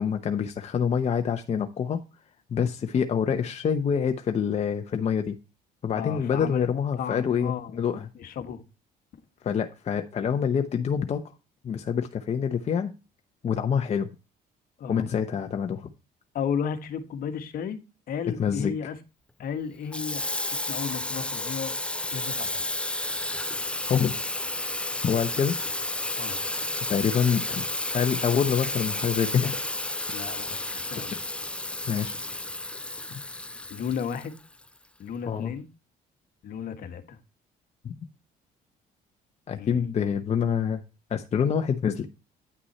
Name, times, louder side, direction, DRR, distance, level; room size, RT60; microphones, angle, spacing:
voice 1, 0.0-2.0 2.5-5.4 5.8-8.1 9.4-11.3 11.6-12.9 13.4-14.1 14.9-15.9 18.4-18.7 23.8-24.1 25.0-25.6 26.9-27.6 27.9-29.6 31.9-32.2 33.1-33.2 35.3-35.5 37.8-37.9 39.5-40.8 41.1-42.1, left 7 dB, 40° left, 0.9 m, -26 dB
voice 2, 5.9-6.7 7.0-7.8 8.1-8.6 14.8-15.1 16.3-17.8 18.1-19.0 19.4-21.8 22.1-22.7 26.1-26.4 30.1-31.1 33.7-34.4 35.0-35.7 36.4-37.2 39.6-39.8, left 7 dB, 60° left, 1.4 m, -34 dB
Water tap faucet / Sink (filling or washing), 19.9-34.7, left 2 dB, 5° left, 0.5 m, -32 dB
9.7 x 6.1 x 4.2 m
cardioid pair, 110°, 17 cm